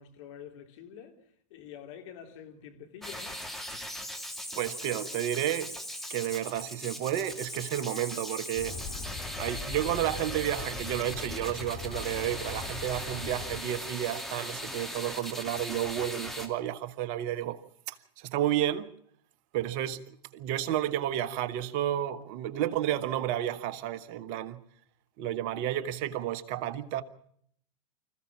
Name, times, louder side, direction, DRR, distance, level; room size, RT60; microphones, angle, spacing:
voice 1, 0.0-3.4, left 8 dB, 60° left, 3.5 m, -47 dB
sound 1, 3.0-16.5, equal, ahead, 2.8 m, -39 dB
voice 2, 4.6-5.8 6.1-8.8 9.4-17.6 17.9-18.9 19.5-24.6 25.2-27.0, right 12 dB, 50° right, 1.4 m, -31 dB
sound 2, 8.5-13.6, left 5 dB, 30° left, 3.8 m, -41 dB
25.5 x 15.0 x 7.4 m
hypercardioid pair, 100°, 18 cm